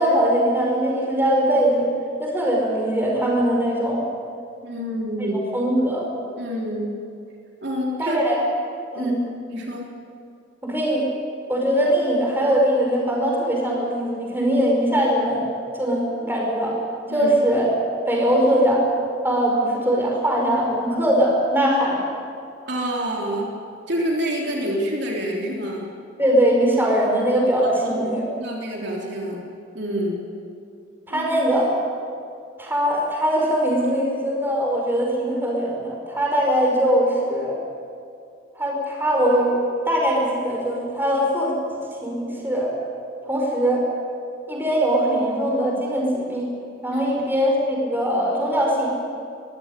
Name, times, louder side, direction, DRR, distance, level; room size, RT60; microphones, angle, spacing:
voice 1, 0.0-1.9 2.2-4.0 5.3-6.1 8.0-8.4 8.9-9.1 10.6-11.0 11.5-15.5 15.7-16.8 17.1-17.7 18.1-18.8 19.2-22.0 26.2-28.3 31.1-31.7 32.6-37.6 38.6-39.6 39.9-41.5 42.0-42.7 43.3-43.9 44.5-46.4 46.8-48.9, equal, 10° right, -2 dB, 5.3 m, -21 dB
voice 2, 4.6-5.4 6.4-6.9 7.6-8.2 9.0-9.2 9.5-9.8 17.1-17.3 22.7-23.5 23.9-25.9 27.8-28.0 28.4-29.4 29.7-30.2 31.1-31.3 46.9-47.0, equal, 60° right, -2 dB, 3.5 m, -27 dB
23.0 x 15.0 x 10.0 m, 2.4 s
head